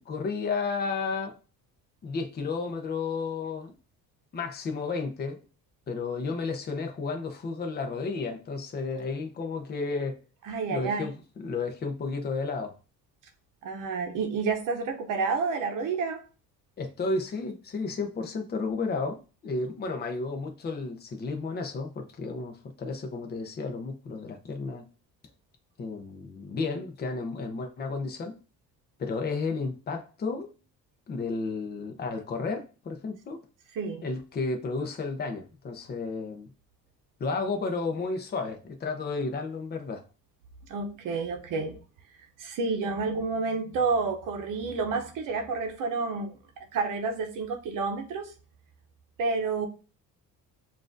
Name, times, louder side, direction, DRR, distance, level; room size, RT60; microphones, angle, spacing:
voice 1, 0.1-1.4 2.0-3.7 4.3-5.4 5.9-10.2 10.7-12.7 16.8-24.8 25.8-28.4 29.0-30.5 31.1-33.4 34.0-36.5 37.2-40.0, left 4 dB, 30° left, 0.6 m, -32 dB
voice 2, 10.4-11.1 13.6-16.3 33.7-34.1 40.7-41.8 42.4-46.3 46.7-48.3 49.2-49.7, right 4 dB, 65° right, 0.7 m, -29 dB
7.2 x 2.5 x 2.5 m
cardioid pair, 135°, 34 cm